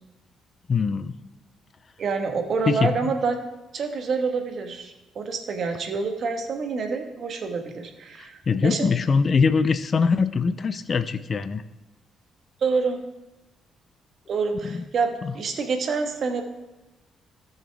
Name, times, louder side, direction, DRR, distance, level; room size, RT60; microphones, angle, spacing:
voice 1, 0.7-1.2 2.7-2.9 8.2-11.6 14.6-14.8 15.2-15.3, left 5 dB, 40° left, 14 dB, 0.5 m, -23 dB
voice 2, 2.0-3.4 3.7-8.9 12.6-13.0 14.3-16.4, right 4 dB, 60° right, 5 dB, 1.4 m, -27 dB
17.0 x 6.5 x 3.5 m, 1.1 s
cardioid pair, 90°, 0 cm